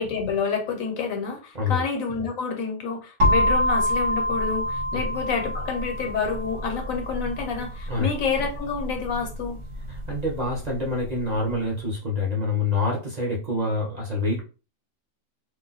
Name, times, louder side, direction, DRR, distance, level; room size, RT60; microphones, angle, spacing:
voice 1, 0.0-9.6, left 5 dB, 80° left, 4 dB, 1.2 m, -28 dB
sound 1, 3.2-11.0, left 1 dB, 60° right, 1.0 m, -27 dB
voice 2, 9.9-14.4, left 3 dB, 35° right, -2 dB, 0.8 m, -26 dB
2.6 x 2.1 x 3.9 m, 0.33 s
omnidirectional pair, 1.4 m